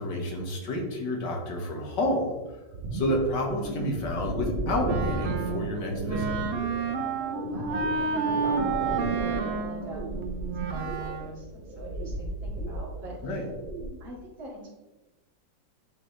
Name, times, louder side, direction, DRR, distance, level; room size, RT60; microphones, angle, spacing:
voice 1, 0.0-2.4 2.9-6.4 13.2-13.4, left 1 dB, 65° left, 0 dB, 1.9 m, -29 dB
sound 1, 2.7-13.9, right 2 dB, 35° right, 1.0 m, -34 dB
Wind instrument woodwind instrument, 4.9-11.4, right 5 dB, 70° right, 0.7 m, -31 dB
voice 2, 7.2-13.2 14.0-14.7, right 2 dB, 90° right, -6 dB, 3.1 m, -43 dB
11.0 x 4.0 x 3.2 m, 1.1 s
omnidirectional pair, 2.1 m